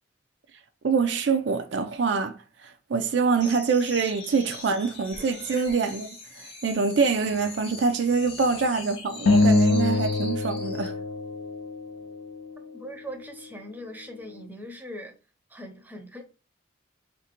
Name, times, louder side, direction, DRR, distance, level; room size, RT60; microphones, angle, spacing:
voice 1, 0.8-2.4 2.6-11.0, right 5 dB, 65° right, 0.4 m, -25 dB
sound 1, 3.4-11.0, left 3 dB, 30° left, 0.9 m, -42 dB
sound 2, 9.3-11.9, left 3 dB, 80° left, 0.4 m, -23 dB
voice 2, 12.7-15.1 15.5-16.2, equal, 10° right, 0.6 m, -40 dB
3.4 x 2.6 x 4.3 m
head